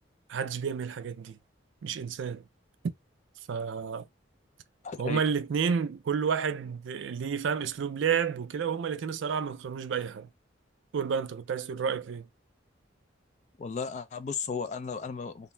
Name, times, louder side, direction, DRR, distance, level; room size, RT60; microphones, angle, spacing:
voice 1, 0.3-1.4 1.8-2.4 3.5-4.1 5.0-10.3 10.9-12.3, right 6 dB, 70° right, 0.4 m, -30 dB
voice 2, 4.8-5.2 13.6-15.5, left 5 dB, 35° left, 0.3 m, -35 dB
2.6 x 2.0 x 3.2 m
head